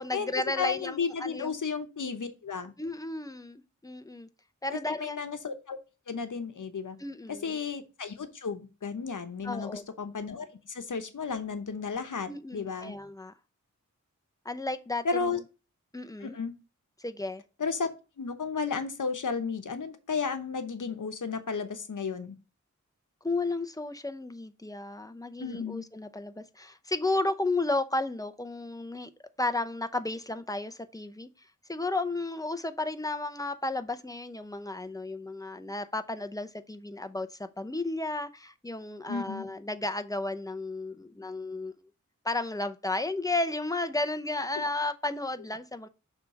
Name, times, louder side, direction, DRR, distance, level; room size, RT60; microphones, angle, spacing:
voice 1, 0.0-1.6 2.8-4.3 4.6-5.2 7.0-7.6 9.4-9.8 12.3-13.3 14.4-15.3 15.9-16.4 17.0-17.4 23.2-29.1 29.4-31.3 31.7-41.7 42.2-45.9, left 2 dB, 10° left, 0.7 m, -33 dB
voice 2, 0.6-2.7 4.7-5.8 6.1-7.0 7.3-13.0 15.0-15.4 16.2-16.5 17.6-17.9 18.2-22.4 25.4-25.8 39.1-39.5, left 5 dB, 80° left, 0.9 m, -33 dB
6.4 x 3.5 x 5.2 m
wide cardioid pair, 65°, 30 cm